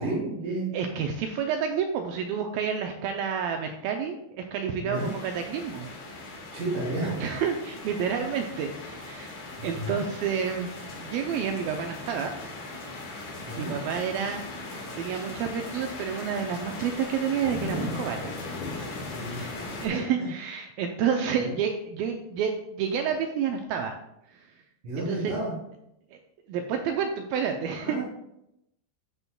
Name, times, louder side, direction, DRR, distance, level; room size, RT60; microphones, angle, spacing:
voice 1, 0.0-0.7 4.8-5.1 6.5-7.2 9.7-10.0 13.5-13.7 19.1-19.4 19.9-20.0 21.4-21.5 24.8-25.5 27.8-28.0, right 2 dB, 55° right, -10 dB, 4.3 m, -31 dB
voice 2, 0.7-5.9 7.2-9.4 9.6-10.7 11.0-12.3 13.6-14.4 15.0-18.4 19.2-19.4 19.8-24.0 24.3-24.5 25.0-25.3 26.1-26.2 26.5-28.0, right 7 dB, 80° right, 4 dB, 2.2 m, -29 dB
sound 1, 4.9-19.9, left 2 dB, 55° left, 2.7 m, -38 dB
15.0 x 5.5 x 2.2 m, 0.81 s
omnidirectional pair, 4.6 m